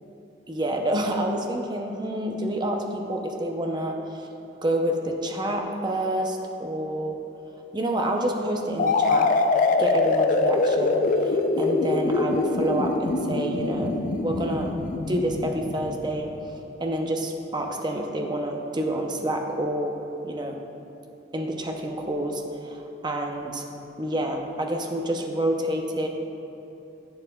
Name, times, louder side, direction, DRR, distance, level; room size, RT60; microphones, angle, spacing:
voice 1, 0.5-4.3 4.6-7.2 7.7-9.3 9.8-14.7 15.1-16.3 16.8-20.0 20.2-20.6 21.3-23.6 24.0-26.1, right 1 dB, 25° right, 2 dB, 0.6 m, -28 dB
sound 1, 8.8-16.5, left 3 dB, 45° left, 0.4 m, -24 dB
10.5 x 8.8 x 2.3 m, 3.0 s
head